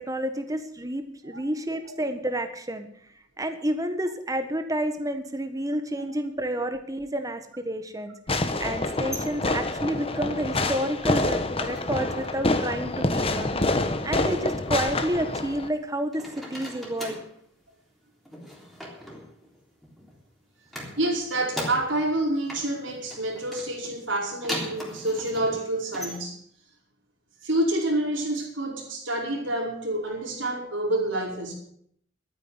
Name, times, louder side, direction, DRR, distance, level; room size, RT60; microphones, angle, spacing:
voice 1, 0.0-2.9 3.4-8.1 8.6-13.6 14.0-17.2, right 1 dB, 20° right, 8 dB, 1.5 m, -30 dB
Fireworks, 8.3-15.7, left 2 dB, 30° left, 1.0 m, -27 dB
sound 1, 8.8-11.0 11.3-12.6 12.8-13.4 14.5-15.8 16.1-17.4 18.3-20.2 20.7-22.2 22.5-26.2, equal, ahead, 3.5 m, -40 dB
voice 2, 21.0-26.4 27.4-31.5, right 1 dB, 85° right, -2 dB, 5.0 m, -28 dB
12.5 x 9.5 x 8.2 m, 0.65 s
head